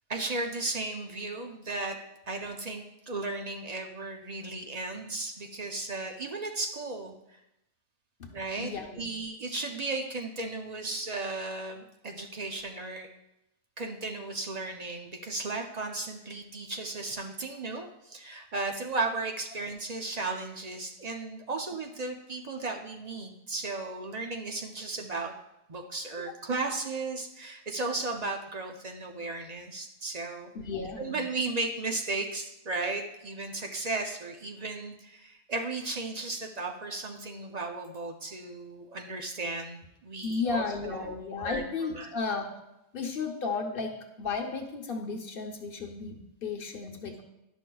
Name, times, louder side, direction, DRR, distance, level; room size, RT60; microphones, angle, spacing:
voice 1, 0.1-2.0 2.3-7.4 8.3-8.7 9.0-13.1 13.8-25.3 25.7-30.5 31.0-42.1, right 3 dB, 45° right, 3 dB, 0.6 m, -35 dB
voice 2, 8.6-9.1 26.2-26.3 30.6-31.2 40.2-42.5 42.9-47.2, left 4 dB, 55° left, 2 dB, 1.0 m, -34 dB
11.0 x 6.1 x 2.3 m, 0.88 s
omnidirectional pair, 1.2 m